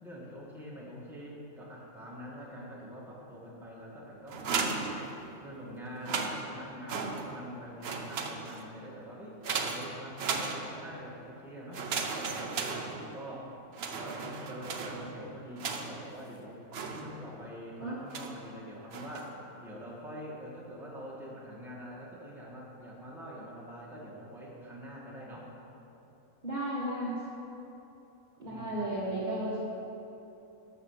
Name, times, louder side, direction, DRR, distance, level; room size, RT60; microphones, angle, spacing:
voice 1, 0.0-4.9 5.4-9.4 9.7-12.8 13.1-13.5 14.0-25.5 28.5-29.1, equal, ahead, -6 dB, 1.8 m, -45 dB
sound 1, 4.3-5.5 5.9-7.5 7.8-8.8 9.4-11.0 11.7-13.4 13.7-16.1 16.7-17.4 18.1-18.5 18.9-19.4, right 4 dB, 55° right, 0.9 m, -36 dB
voice 2, 26.4-27.2 28.4-29.6, right 1 dB, 35° right, -7 dB, 1.5 m, -34 dB
12.5 x 5.7 x 6.4 m, 2.9 s
omnidirectional pair, 1.5 m